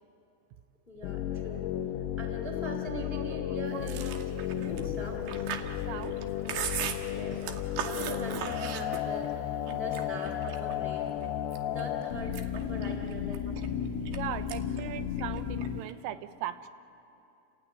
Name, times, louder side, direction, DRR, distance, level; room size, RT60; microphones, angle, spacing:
voice 1, 0.9-1.6 2.2-4.3 4.6-5.5 7.1-7.5 7.8-11.1 11.6-13.5 14.1-14.2, equal, 25° left, 1 dB, 1.2 m, -41 dB
sound 1, 1.0-15.8, left 10 dB, 90° left, 3.5 m, -34 dB
voice 2, 3.7-4.3 5.9-6.2 9.6-9.9 14.1-16.7, right 13 dB, 85° right, 11 dB, 3.4 m, -39 dB
Chewing mastication, 3.8-9.3 9.7-10.7 11.2-11.8 12.2-14.2 14.5-14.8 15.1-15.9, right 9 dB, 70° right, 2.8 m, -38 dB
sound 2, 4.4-13.4, left 4 dB, 40° right, 3.3 m, -51 dB
29.5 x 15.5 x 9.3 m, 2.8 s
omnidirectional pair, 5.8 m